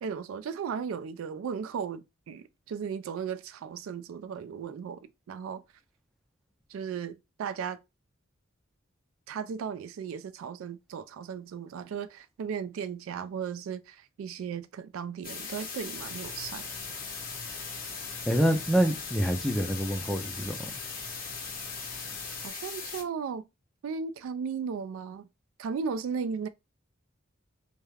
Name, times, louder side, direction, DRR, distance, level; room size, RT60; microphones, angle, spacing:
voice 1, 0.0-5.6 6.7-7.8 9.3-16.7 22.4-23.4 23.8-25.3 25.6-26.5, right 6 dB, 80° right, 0.3 m, -36 dB
sound 1, 15.2-23.0, left 5 dB, 45° left, 0.6 m, -39 dB
sound 2, 15.9-22.5, right 1 dB, 60° right, 1.0 m, -49 dB
voice 2, 18.3-20.8, right 1 dB, ahead, 0.4 m, -26 dB
2.3 x 2.1 x 3.2 m
head